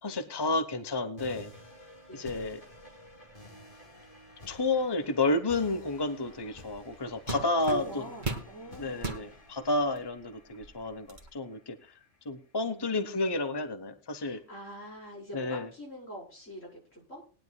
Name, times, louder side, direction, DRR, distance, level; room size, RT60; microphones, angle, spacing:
voice 1, 0.0-1.5 2.1-2.6 4.5-8.0 8.8-11.9 12.2-14.4 15.3-15.7, left 2 dB, 20° left, 9 dB, 1.0 m, -31 dB
sound 1, 1.2-12.2, left 1 dB, 45° left, 2.9 m, -52 dB
sound 2, 6.6-6.8 7.3-8.5 9.0-9.3 10.0-10.1 10.5-11.3, right 2 dB, 40° right, 1.8 m, -36 dB
voice 2, 7.4-9.0 9.8-10.0 12.7-13.2 14.2-17.2, equal, 80° left, -3 dB, 5.3 m, -45 dB
20.0 x 10.5 x 2.3 m, 0.36 s
omnidirectional pair, 1.3 m